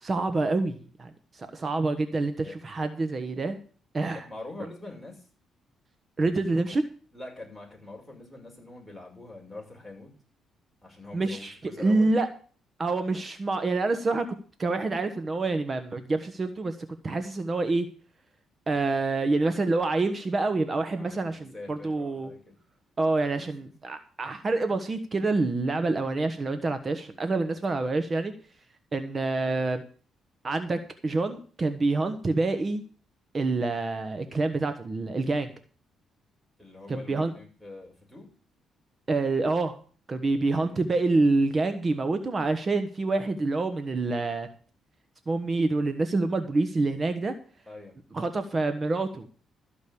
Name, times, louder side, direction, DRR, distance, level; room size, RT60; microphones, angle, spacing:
voice 1, 0.0-3.6 3.9-4.2 6.2-6.8 11.1-12.3 12.8-14.2 14.6-16.7 17.0-17.9 18.7-22.3 23.0-28.3 28.9-29.8 30.4-32.8 33.3-35.5 36.9-37.3 39.1-39.8 40.1-44.5 45.3-47.3 48.1-49.3, right 3 dB, 35° right, 8 dB, 1.3 m, -27 dB
voice 2, 4.0-5.2 6.5-6.6 7.1-10.1 10.8-12.1 20.9-22.6 23.4-23.5 27.5-27.8 36.6-38.3 40.5-41.3 47.7-47.9, left 2 dB, ahead, -2 dB, 6.1 m, -44 dB
14.0 x 5.2 x 8.5 m, 0.41 s
cardioid pair, 90°, 0 cm